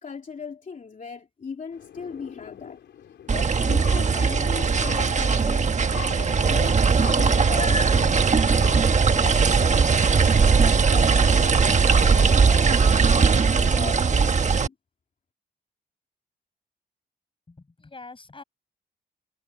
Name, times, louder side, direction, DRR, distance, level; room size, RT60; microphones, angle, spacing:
voice 1, 0.0-2.8 3.3-5.7 6.1-12.7 13.1-14.7, left 5 dB, 45° left, 2.8 m, -38 dB
sound 1, 1.7-13.6, left 10 dB, 80° left, 4.1 m, -44 dB
sound 2, 3.3-14.7, right 5 dB, 40° right, 1.3 m, -19 dB
voice 2, 17.5-18.4, left 3 dB, 30° left, 5.7 m, -44 dB
cardioid pair, 75°, 18 cm